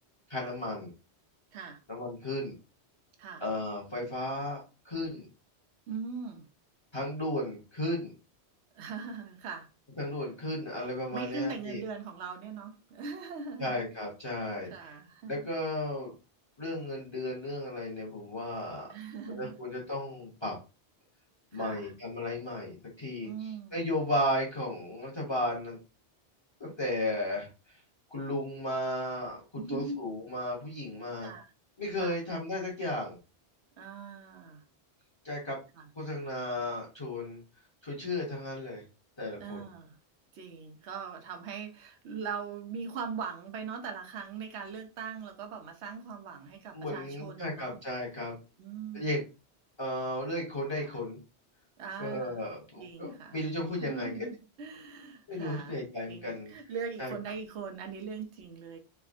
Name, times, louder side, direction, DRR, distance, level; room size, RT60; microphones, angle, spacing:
voice 1, 0.3-0.9 1.9-2.5 3.4-5.3 6.9-8.1 10.0-11.8 13.6-15.0 15.3-16.1 16.6-18.9 19.4-20.6 21.5-25.8 26.6-27.5 28.1-31.3 31.8-33.2 35.2-35.6 35.9-37.4 37.8-38.8 39.2-39.6 46.7-48.3 48.9-49.2 49.8-51.2 52.0-54.1 55.3-56.5 57.0-57.1, left 1 dB, 30° left, 0.9 m, -34 dB
voice 2, 5.9-6.4 8.7-9.7 11.1-13.8 14.3-15.3 18.9-19.6 21.5-21.9 23.2-23.8 29.6-30.0 31.2-31.5 32.0-32.2 33.8-34.6 35.8-35.9 39.4-40.0 40.3-47.8 48.6-49.1 50.7-51.0 51.8-52.4 52.8-53.4 53.8-58.8, right 5 dB, 85° right, 0.9 m, -40 dB
3.3 x 2.1 x 2.4 m
omnidirectional pair, 1.1 m